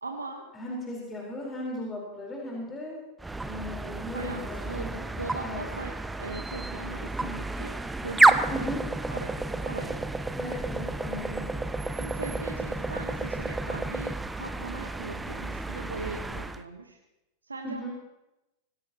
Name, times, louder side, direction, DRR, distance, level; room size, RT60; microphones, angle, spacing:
voice 1, 0.0-0.4 4.1-8.7 9.1-10.0 12.0-17.0 17.4-17.8, right 3 dB, 80° right, 2 dB, 1.5 m, -40 dB
voice 2, 0.5-3.0 3.4-5.1 5.4-5.7 8.5-8.8 10.3-11.5 17.6-17.9, left 1 dB, 15° left, -3 dB, 4.6 m, -37 dB
sound 1, 3.2-16.6, right 2 dB, 10° right, 0.8 m, -30 dB
24.5 x 17.0 x 3.1 m, 0.94 s
figure-of-eight pair, 90°, 0 cm